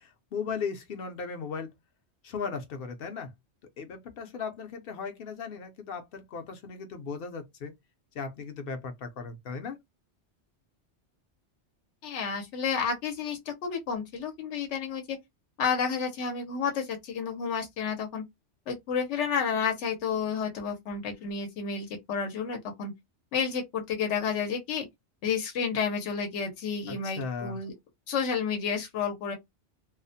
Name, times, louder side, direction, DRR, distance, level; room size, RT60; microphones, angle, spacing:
voice 1, 0.0-1.7 2.2-3.3 3.8-7.7 8.1-9.8 26.9-27.6, left 5 dB, 60° left, 0.7 m, -37 dB
voice 2, 12.0-15.2 15.6-18.2 18.7-22.9 23.3-24.9 25.2-27.7 28.1-29.3, left 6 dB, 90° left, 1.0 m, -31 dB
2.4 x 2.0 x 2.6 m
omnidirectional pair, 1.2 m